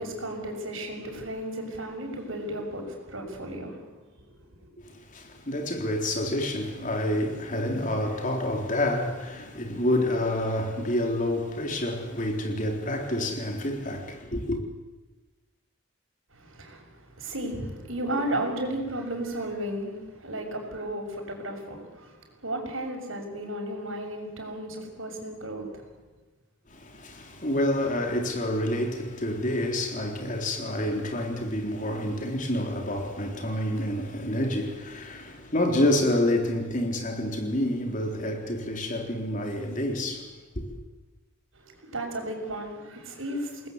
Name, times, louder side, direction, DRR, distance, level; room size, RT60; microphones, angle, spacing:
voice 1, 0.0-3.9 4.2-4.3 16.3-25.8 41.5-43.7, right 1 dB, 80° right, 6.6 m, -34 dB
voice 2, 4.8-14.6 26.7-40.6, left 1 dB, 40° left, 3.8 m, -28 dB
29.0 x 20.0 x 8.2 m
head